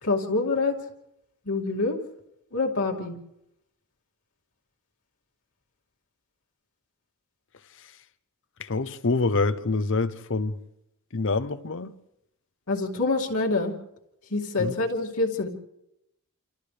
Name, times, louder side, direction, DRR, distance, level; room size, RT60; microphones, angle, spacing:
voice 1, 0.0-0.8 1.4-2.0 2.5-3.2 12.7-13.7 14.3-15.5, left 3 dB, 85° left, 2.5 m, -26 dB
voice 2, 8.6-10.6 11.1-11.9 14.6-14.7, left 3 dB, 60° left, 0.8 m, -26 dB
28.5 x 27.0 x 3.4 m
head